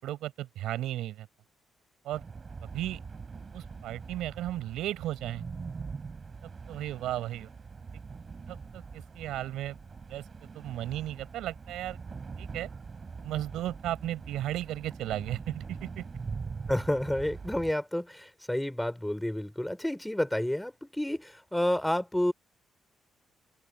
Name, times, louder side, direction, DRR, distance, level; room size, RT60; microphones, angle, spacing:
voice 1, 0.0-1.3 2.0-2.2 2.6-3.0 3.5-5.4 6.4-7.5 8.5-9.8 10.1-10.2 10.5-12.0 12.4-12.7 13.2-16.0, right 14 dB, 85° right, 7.4 m, -35 dB
sound 1, 2.1-17.7, right 5 dB, 35° right, 4.3 m, -43 dB
voice 2, 16.7-22.3, left 1 dB, 5° left, 3.9 m, -30 dB
cardioid pair, 90°, 0 cm